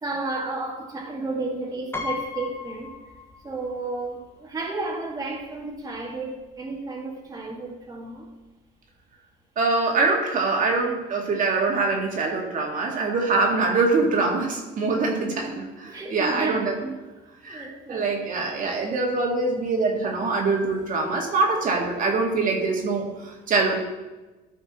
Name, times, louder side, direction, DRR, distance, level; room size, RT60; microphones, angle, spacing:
voice 1, 0.0-2.9 3.4-8.3 15.2-17.0 17.4-18.2, right 3 dB, 20° right, -1 dB, 2.0 m, -32 dB
Piano, 1.9-3.8 4.1-4.2 5.3-5.4 5.7-6.0, left 4 dB, 15° left, 1.3 m, -35 dB
voice 2, 9.6-15.5 16.1-16.7 17.4-23.8, right 3 dB, 50° right, 0 dB, 2.1 m, -24 dB
14.0 x 5.9 x 4.3 m, 1.1 s
cardioid pair, 110°, 17 cm